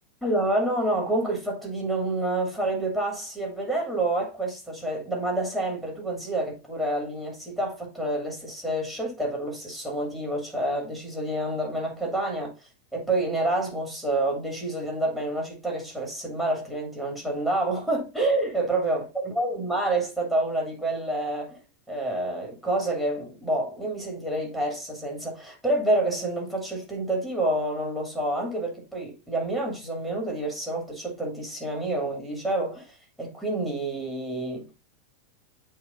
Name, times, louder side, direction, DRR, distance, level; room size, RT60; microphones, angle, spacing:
voice 1, 0.2-12.5 12.9-21.6 21.9-34.7, right 1 dB, 5° left, 2.6 m, -28 dB
8.8 x 3.3 x 3.8 m
figure-of-eight pair, 90°, 0 cm